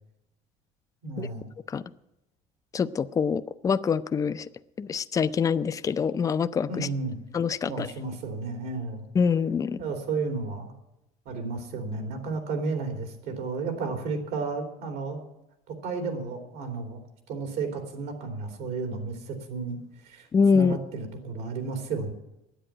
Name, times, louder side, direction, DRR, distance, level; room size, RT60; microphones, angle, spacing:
voice 1, 1.0-1.5 6.7-7.2 7.6-9.1 9.8-10.7 11.2-15.3 15.7-17.0 17.3-19.8 20.0-20.3 20.5-22.1, right 4 dB, 80° right, 4 dB, 3.1 m, -32 dB
voice 2, 2.7-4.5 4.8-6.9 7.3-7.9 9.1-9.8 20.3-20.8, left 6 dB, 20° left, 13 dB, 0.4 m, -25 dB
10.0 x 8.3 x 9.8 m, 0.91 s
cardioid pair, 130°, 16 cm